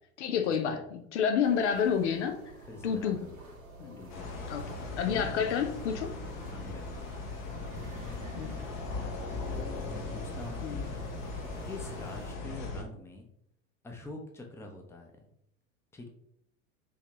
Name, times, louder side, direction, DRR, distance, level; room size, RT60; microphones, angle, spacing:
voice 1, 0.2-2.4 2.8-3.2 3.8-4.0 4.5-4.6 4.9-6.1 8.3-8.5 10.6-10.8, left 7 dB, 55° left, 8 dB, 0.7 m, -29 dB
sound 1, 1.4-12.3, right 2 dB, 90° right, 1.3 m, -49 dB
voice 2, 2.7-3.4 3.8-5.4 6.5-7.1 9.0-10.9 11.6-13.3 13.8-15.3 15.9-16.1, left 2 dB, 5° left, 2 dB, 0.7 m, -46 dB
sound 2, 4.1-12.8, left 3 dB, 40° left, 1.1 m, -38 dB
5.7 x 3.1 x 3.0 m, 0.74 s
figure-of-eight pair, 80°, 41 cm